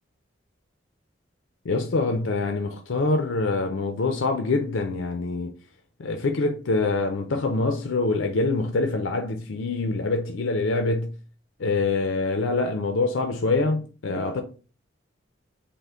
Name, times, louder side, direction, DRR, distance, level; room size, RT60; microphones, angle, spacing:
voice 1, 1.6-5.5 6.0-11.1 11.6-14.4, left 3 dB, 80° left, 0.5 m, -25 dB
5.6 x 2.1 x 3.6 m
head